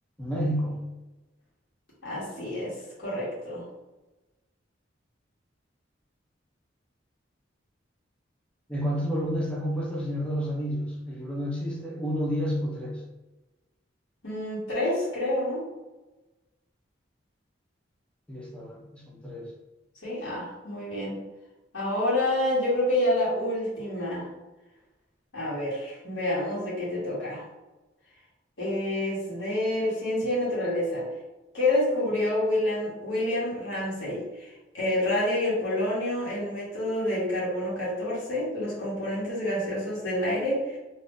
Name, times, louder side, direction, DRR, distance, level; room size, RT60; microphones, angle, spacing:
voice 1, 0.2-0.8 8.7-13.0 18.3-19.5, equal, 5° left, -4 dB, 0.6 m, -30 dB
voice 2, 2.0-3.6 14.2-15.6 20.0-21.2 21.7-24.3 25.3-27.4 28.6-31.0 31.5-40.8, left 1 dB, 80° left, -8 dB, 1.3 m, -28 dB
3.6 x 2.6 x 2.6 m, 1.1 s
head